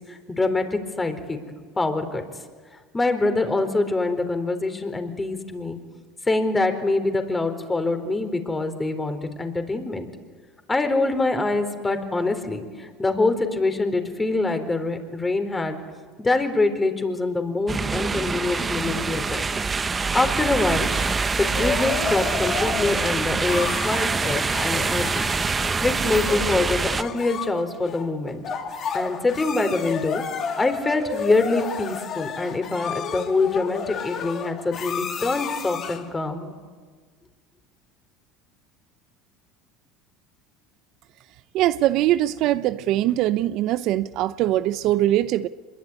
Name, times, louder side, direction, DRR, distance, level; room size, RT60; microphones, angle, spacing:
voice 1, 0.1-1.4 1.8-2.2 2.9-5.8 6.3-10.1 10.7-15.8 16.2-19.4 20.1-20.9 21.3-25.3 25.8-28.4 28.9-30.2 30.6-36.5, left 3 dB, 15° left, 4.2 m, -25 dB
sound 1, 17.7-27.0, right 4 dB, 25° right, 1.1 m, -25 dB
sound 2, 20.9-36.1, left 6 dB, 45° left, 2.8 m, -32 dB
voice 2, 41.5-45.5, right 14 dB, 60° right, 0.7 m, -22 dB
25.5 x 22.0 x 9.8 m
supercardioid pair, 95°, 0 cm